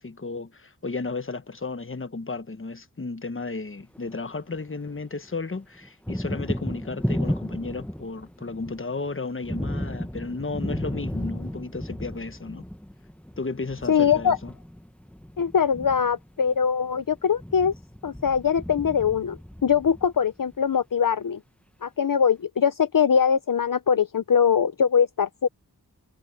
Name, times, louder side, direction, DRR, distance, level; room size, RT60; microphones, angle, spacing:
voice 1, 0.0-12.7 13.4-14.5, left 3 dB, 30° left, 1.3 m, -34 dB
Thunder, 3.8-5.0 5.3-20.5, equal, 5° left, 1.2 m, -34 dB
voice 2, 13.9-14.4 15.4-17.7 18.0-21.4 21.8-25.5, left 7 dB, 55° left, 0.8 m, -22 dB
cardioid pair, 40°, 39 cm